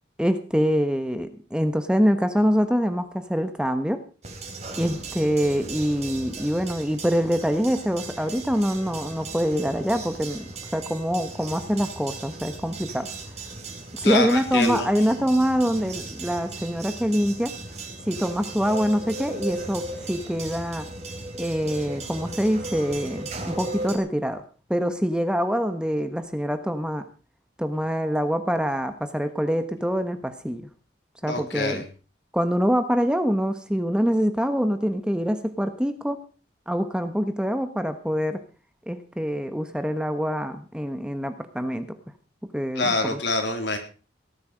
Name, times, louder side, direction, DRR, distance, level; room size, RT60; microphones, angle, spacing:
voice 1, 0.2-4.0 4.8-10.4 10.7-13.1 14.0-17.5 18.1-20.9 21.4-24.4 24.7-27.0 27.6-30.6 31.2-31.8 32.3-36.2 36.7-38.4 38.9-41.9 42.5-43.2, equal, 5° right, 9 dB, 1.1 m, -25 dB
sound 1, 4.2-24.0, right 2 dB, 35° right, 3.5 m, -37 dB
voice 2, 14.0-14.9 31.2-31.9 42.8-43.8, left 2 dB, 70° left, 5 dB, 3.7 m, -25 dB
18.0 x 11.5 x 5.1 m, 0.36 s
head